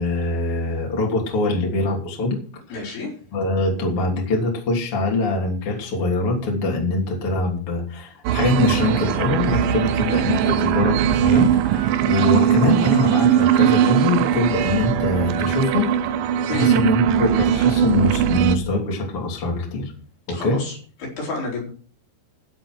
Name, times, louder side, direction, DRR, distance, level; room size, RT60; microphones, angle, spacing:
voice 1, 0.0-2.4 2.7-3.0 3.3-19.9 20.3-20.6, left 2 dB, 35° left, -1 dB, 3.6 m, -23 dB
voice 2, 2.7-3.1 16.5-16.7 20.3-20.8 21.2-21.7, left 3 dB, 65° left, -2 dB, 6.5 m, -29 dB
sound 1, 8.2-18.5, right 9 dB, 90° right, 1.9 m, -19 dB
13.5 x 7.7 x 6.2 m, 0.43 s
omnidirectional pair, 5.0 m